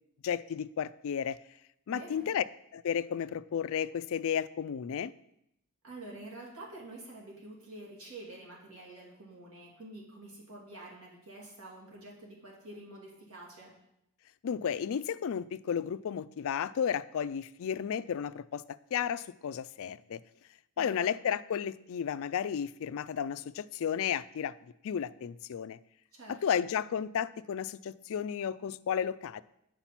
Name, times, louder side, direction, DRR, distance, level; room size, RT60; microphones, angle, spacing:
voice 1, 0.2-1.4 1.9-2.4 2.7-5.1 14.4-18.6 18.9-20.2 20.8-24.5 24.8-25.8 26.3-29.4, left 8 dB, 65° left, 15 dB, 0.4 m, -33 dB
voice 2, 1.9-2.3 5.8-13.7 20.8-21.1 26.1-26.6, right 2 dB, 75° right, -3 dB, 2.6 m, -48 dB
8.9 x 5.7 x 5.9 m, 0.79 s
head